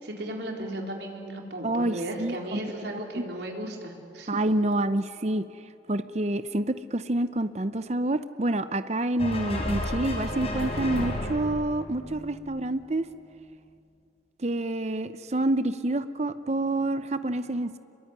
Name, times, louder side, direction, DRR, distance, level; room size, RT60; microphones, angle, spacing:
voice 1, 0.0-4.4, right 1 dB, 75° right, 1 dB, 3.9 m, -35 dB
voice 2, 1.6-2.6 2.9-3.2 4.3-5.5 5.9-13.1 14.4-17.8, right 1 dB, 40° right, 12 dB, 0.7 m, -28 dB
sound 1, 9.2-12.7, left 1 dB, 35° left, 4.5 m, -32 dB
27.0 x 23.0 x 9.6 m, 2.5 s
head